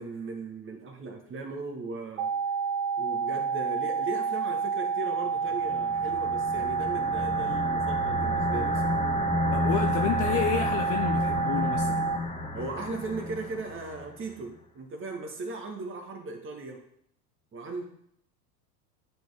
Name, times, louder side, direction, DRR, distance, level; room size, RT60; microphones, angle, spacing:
voice 1, 0.0-2.3 3.0-9.1 12.5-16.8 17.5-17.8, right 3 dB, 25° right, 3 dB, 1.5 m, -37 dB
sound 1, 2.2-12.2, right 6 dB, 40° right, 0.8 m, -29 dB
sound 2, 5.4-14.1, left 2 dB, 15° left, 1.1 m, -31 dB
voice 2, 9.5-12.1, left 10 dB, 30° left, 4 dB, 0.5 m, -30 dB
9.9 x 4.5 x 3.4 m, 0.69 s
figure-of-eight pair, 85°, 48 cm